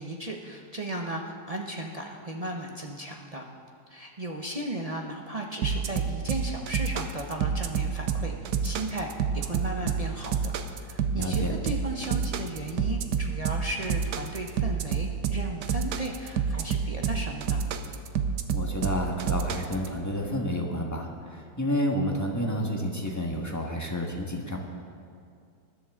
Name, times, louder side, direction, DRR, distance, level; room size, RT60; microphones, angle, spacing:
voice 1, 0.0-3.4 3.9-17.6, right 1 dB, 45° right, 0 dB, 0.4 m, -35 dB
sound 1, 5.6-19.9, right 7 dB, 70° right, 1.2 m, -28 dB
voice 2, 11.1-11.5 18.5-24.6, equal, 10° left, -1 dB, 1.2 m, -30 dB
20.0 x 11.5 x 3.7 m, 2.4 s
omnidirectional pair, 2.0 m